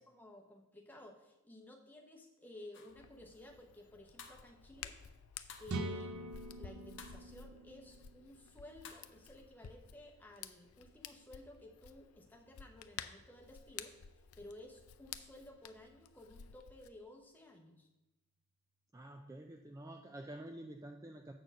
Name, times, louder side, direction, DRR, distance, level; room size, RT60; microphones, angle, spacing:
voice 1, 0.0-4.9 5.6-17.9, left 1 dB, 10° left, 1 dB, 0.9 m, -55 dB
sound 1, 2.7-3.0 4.2-4.5 5.5-5.8 7.0-7.3 8.8-9.1, left 6 dB, 55° left, 0.8 m, -53 dB
Hands, 2.9-16.9, left 8 dB, 80° left, 0.5 m, -53 dB
sound 2, 5.7-9.4, right 2 dB, 80° right, 0.6 m, -44 dB
voice 2, 18.9-21.3, right 1 dB, 15° right, 3 dB, 0.3 m, -49 dB
7.9 x 4.4 x 6.3 m, 1.0 s
head